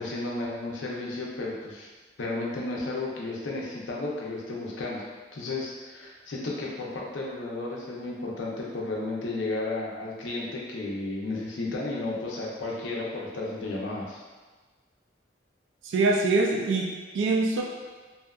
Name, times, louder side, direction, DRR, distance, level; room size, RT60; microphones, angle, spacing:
voice 1, 0.0-1.9 2.2-5.1 5.3-14.2, left 2 dB, 85° left, -3 dB, 0.6 m, -33 dB
voice 2, 15.8-17.6, right 3 dB, 85° right, 1 dB, 0.3 m, -24 dB
2.7 x 2.3 x 2.2 m, 1.4 s
head